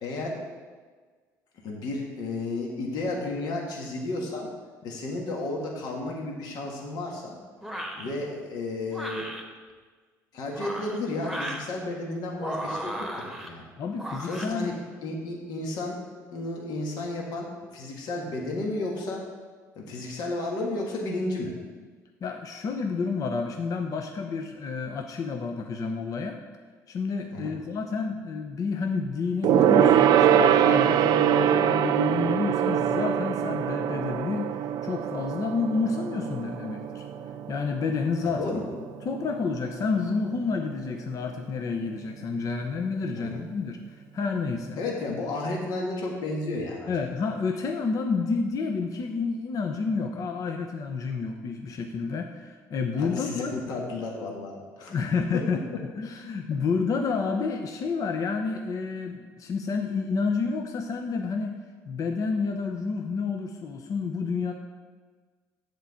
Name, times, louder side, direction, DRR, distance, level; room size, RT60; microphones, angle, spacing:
voice 1, 0.0-0.4 1.6-4.5 4.8-7.4 8.0-9.3 10.3-13.6 14.2-14.7 15.0-16.0 16.3-19.2 19.7-21.5 27.3-27.5 38.4-38.6 43.1-43.4 44.8-46.9 53.0-55.0, left 2 dB, 70° left, -1 dB, 1.6 m, -32 dB
sound 1, 7.6-8.1 8.9-9.4 10.4-11.7 12.4-13.5 14.0-14.5, right 1 dB, ahead, 1.3 m, -35 dB
voice 2, 13.8-14.8 22.2-26.4 26.9-37.0 37.5-38.6 39.0-43.8 44.1-44.8 46.9-53.5 54.9-55.6 56.0-61.6 61.9-64.5, left 4 dB, 50° left, 4 dB, 0.7 m, -29 dB
Gong, 29.4-39.2 39.5-39.8 40.1-40.2, right 10 dB, 65° right, 0.4 m, -23 dB
7.5 x 4.6 x 7.0 m, 1.5 s
supercardioid pair, 85°, 7 cm